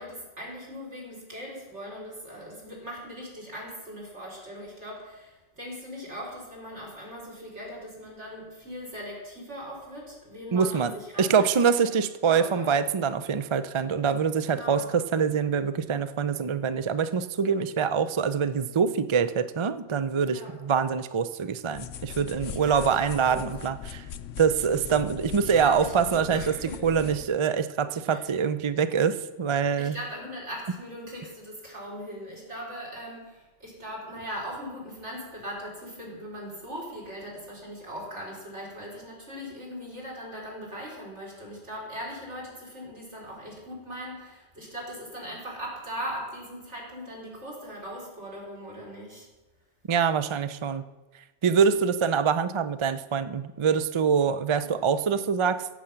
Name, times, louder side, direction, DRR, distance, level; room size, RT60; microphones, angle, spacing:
voice 1, 0.0-11.5 12.2-12.7 14.4-15.0 20.3-20.5 22.5-23.5 25.4-27.1 28.1-28.2 29.8-49.3 54.6-54.8, equal, 65° right, -4 dB, 4.6 m, -40 dB
voice 2, 10.5-10.9 11.2-24.0 24.4-26.6 26.8-30.0 49.9-50.8 51.4-55.7, right 6 dB, 45° right, 12 dB, 0.4 m, -25 dB
sound 1, 21.7-27.2, left 9 dB, 85° left, 1.0 m, -40 dB
16.5 x 7.7 x 5.8 m, 1.2 s
omnidirectional pair, 1.3 m